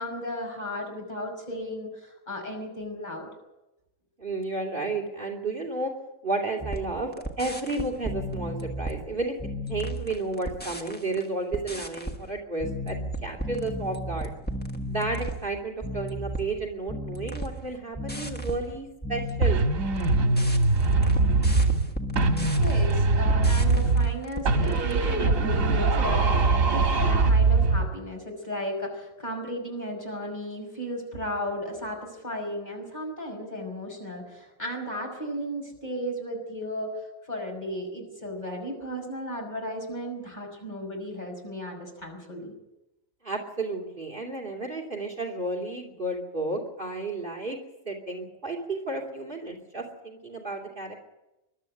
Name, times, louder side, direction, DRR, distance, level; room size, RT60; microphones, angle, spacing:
voice 1, 0.0-3.3 22.6-42.5, equal, 35° left, 1 dB, 6.0 m, -35 dB
voice 2, 4.2-5.9 6.2-9.4 9.7-14.3 14.9-19.6 43.2-47.6 47.8-50.9, right 2 dB, 40° right, 2 dB, 3.1 m, -32 dB
sound 1, 6.6-11.3 11.5-24.9, equal, 10° left, 1.4 m, -34 dB
sound 2, 19.4-21.9 22.2-24.2 24.5-27.9, right 3 dB, 85° right, 1.8 m, -22 dB
21.5 x 12.5 x 9.9 m, 0.96 s
omnidirectional pair, 1.4 m